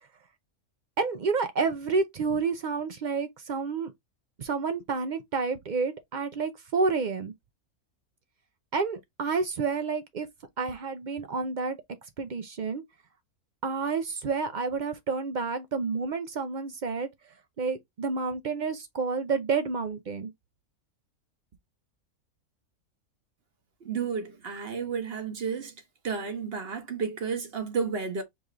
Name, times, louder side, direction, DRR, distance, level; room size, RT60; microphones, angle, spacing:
voice 1, 1.0-3.9 4.4-7.3 8.7-10.3 10.6-11.8 12.2-12.8 13.6-17.1 17.6-20.3, right 4 dB, 80° right, 0.4 m, -29 dB
voice 2, 23.8-25.7 26.0-28.2, right 5 dB, 45° right, 1.1 m, -32 dB
4.9 x 2.5 x 3.0 m
omnidirectional pair, 1.5 m